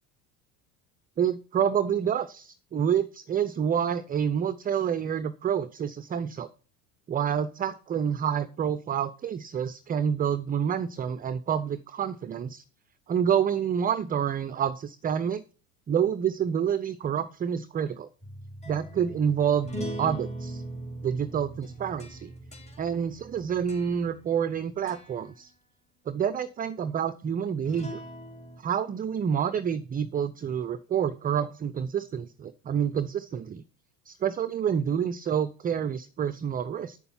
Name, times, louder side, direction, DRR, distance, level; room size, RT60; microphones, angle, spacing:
voice 1, 1.2-6.5 7.1-12.6 13.1-15.4 15.9-18.1 18.7-19.7 20.0-20.6 21.0-22.3 22.8-25.5 26.1-28.0 28.6-33.6 34.1-37.0, right 8 dB, 20° right, 15 dB, 0.5 m, -28 dB
sound 1, 18.2-24.6 24.9-25.3 27.6-28.6, right 1 dB, 15° left, 3.0 m, -40 dB
8.6 x 6.8 x 5.6 m, 0.37 s
hypercardioid pair, 80°, 47 cm